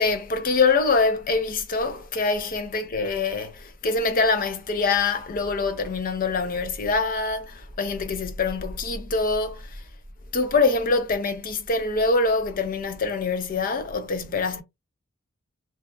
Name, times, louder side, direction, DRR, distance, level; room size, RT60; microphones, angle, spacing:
voice 1, 0.0-9.8 10.3-14.6, left 3 dB, 40° left, 0.5 m, -24 dB
2.6 x 2.3 x 2.2 m
head